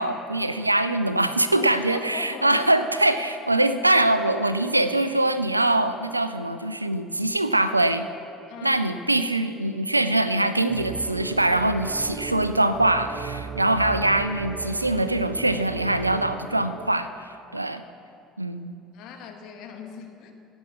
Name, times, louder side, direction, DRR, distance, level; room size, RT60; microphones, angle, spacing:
voice 1, 0.0-8.1 8.6-17.1 17.5-17.8 18.4-18.8, right 1 dB, 85° right, 11 dB, 0.4 m, -23 dB
voice 2, 1.5-2.6 8.5-9.0 18.9-20.3, left 6 dB, 55° left, 4 dB, 1.5 m, -40 dB
sound 1, 10.7-16.9, right 7 dB, 35° right, 0.5 m, -37 dB
16.5 x 6.1 x 7.2 m, 2.8 s
figure-of-eight pair, 60°, 0 cm